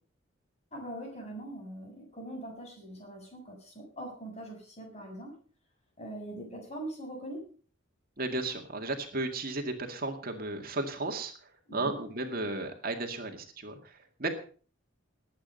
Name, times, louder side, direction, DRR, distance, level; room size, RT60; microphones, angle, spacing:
voice 1, 0.7-5.3 6.0-7.5 11.7-12.0, right 1 dB, 35° left, 1 dB, 7.3 m, -42 dB
voice 2, 8.2-14.3, right 2 dB, 45° right, 4 dB, 2.1 m, -34 dB
20.0 x 8.9 x 5.5 m, 0.41 s
head